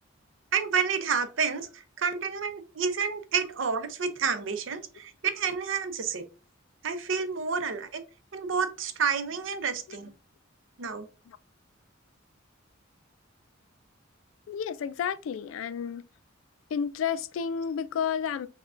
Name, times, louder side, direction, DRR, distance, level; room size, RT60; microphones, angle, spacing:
voice 1, 0.5-6.2 6.8-8.0 8.3-10.1 10.8-11.1, right 6 dB, 70° right, 0.6 m, -29 dB
voice 2, 14.5-16.0 16.7-18.5, left 7 dB, 80° left, 0.3 m, -31 dB
5.9 x 2.2 x 2.4 m
head